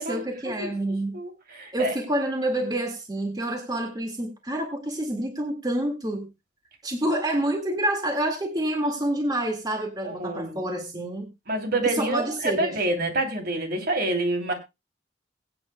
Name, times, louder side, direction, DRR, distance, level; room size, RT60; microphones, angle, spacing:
voice 1, 0.0-1.2 1.7-6.3 6.8-11.3 11.9-13.2, right 1 dB, 20° right, 1.9 m, -28 dB
voice 2, 1.1-1.9 10.0-10.6 11.5-14.5, right 2 dB, 55° right, 3.0 m, -27 dB
21.5 x 8.9 x 2.2 m
head